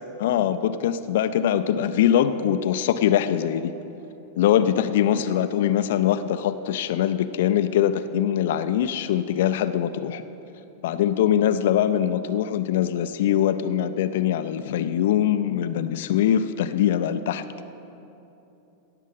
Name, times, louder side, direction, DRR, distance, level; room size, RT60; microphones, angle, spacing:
voice 1, 0.2-3.7 4.4-10.2 10.8-17.4, left 10 dB, 55° left, 12 dB, 0.4 m, -22 dB
16.5 x 7.3 x 5.5 m, 2.9 s
figure-of-eight pair, 90°, 0 cm